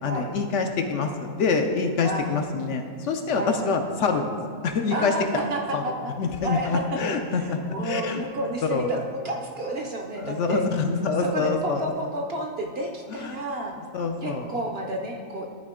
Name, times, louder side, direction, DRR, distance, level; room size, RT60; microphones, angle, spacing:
voice 1, 0.0-4.4 4.6-5.4 5.7-5.8 6.2-8.2 8.7-8.9 10.2-11.8 13.1-13.4 13.9-14.5, left 4 dB, 65° left, 4 dB, 0.8 m, -26 dB
voice 2, 2.0-2.7 3.3-3.7 4.9-6.1 6.4-10.6 11.2-13.8 14.2-15.5, right 1 dB, 60° right, 2 dB, 0.7 m, -31 dB
12.0 x 4.1 x 3.6 m, 2.1 s
omnidirectional pair, 1.5 m